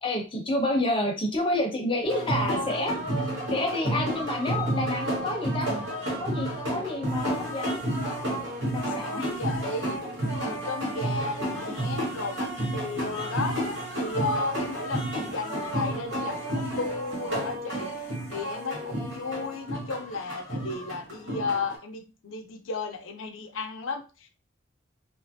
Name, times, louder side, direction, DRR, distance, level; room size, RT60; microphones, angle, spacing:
voice 1, 0.0-2.9 3.5-5.7 6.2-8.3 8.6-9.2, left 1 dB, 25° left, 0.6 m, -29 dB
sound 1, 2.0-21.8, right 1 dB, 85° right, 1.3 m, -31 dB
voice 2, 8.6-10.0 10.4-13.6 13.9-24.3, left 3 dB, 85° left, 0.5 m, -34 dB
3.0 x 2.4 x 2.6 m
head